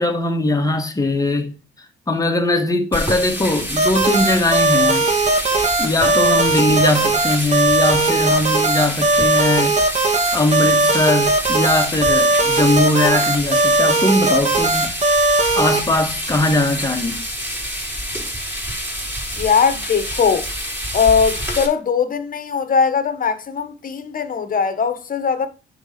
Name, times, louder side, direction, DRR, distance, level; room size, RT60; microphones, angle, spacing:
voice 1, 0.0-1.5 2.1-5.1 5.8-9.8 10.3-14.9 15.5-17.2, left 2 dB, 15° left, 1.9 m, -20 dB
sound 1, 2.9-21.7, equal, 10° right, 6.0 m, -28 dB
sound 2, 3.8-15.8, right 2 dB, 35° right, 2.4 m, -18 dB
voice 2, 19.3-20.5 20.9-25.5, left 6 dB, 45° left, 1.5 m, -19 dB
9.8 x 4.0 x 6.0 m
cardioid pair, 90°, 20 cm